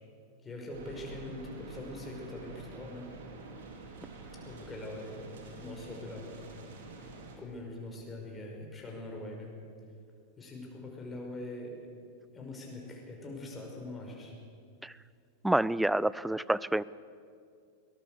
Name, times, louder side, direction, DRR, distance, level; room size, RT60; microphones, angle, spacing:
voice 1, 0.4-3.1 4.4-6.2 7.4-9.5 10.4-11.7 12.3-14.3, left 2 dB, 15° left, 0 dB, 5.4 m, -43 dB
sound 1, 0.7-7.4, right 3 dB, 60° right, 3.3 m, -47 dB
voice 2, 15.4-16.8, right 1 dB, 5° right, 20 dB, 0.4 m, -28 dB
22.5 x 18.5 x 6.8 m, 2.3 s
figure-of-eight pair, 90°, 0 cm